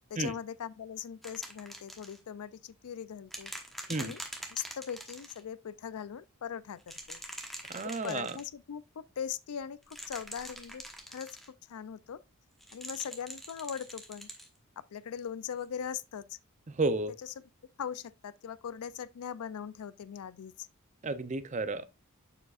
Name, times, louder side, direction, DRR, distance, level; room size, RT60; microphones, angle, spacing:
voice 1, 0.1-3.5 4.0-4.2 4.5-7.2 7.8-12.2 12.7-14.3 14.8-16.4 17.2-17.3 17.8-20.7 21.7-21.8, left 8 dB, 80° left, 0.4 m, -40 dB
sound 1, 1.2-2.2 3.3-5.4 6.8-8.5 9.8-11.5 12.6-14.5 15.6-15.7, equal, ahead, 1.0 m, -44 dB
voice 2, 7.7-8.3 16.7-17.1 21.0-21.9, right 3 dB, 35° right, 0.5 m, -32 dB
7.1 x 6.6 x 2.4 m
head